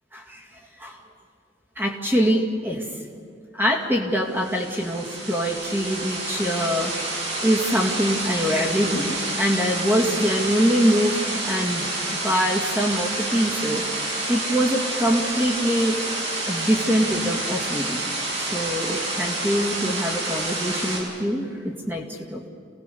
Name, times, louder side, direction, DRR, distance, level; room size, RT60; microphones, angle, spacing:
voice 1, 1.8-2.8 3.5-6.9 7.4-16.0 16.5-18.0 18.4-22.0 22.3-22.4, equal, 10° right, 0 dB, 2.1 m, -24 dB
sound 1, 4.4-21.0, right 2 dB, 70° right, 6.4 m, -28 dB
28.0 x 18.5 x 6.9 m, 2.3 s
head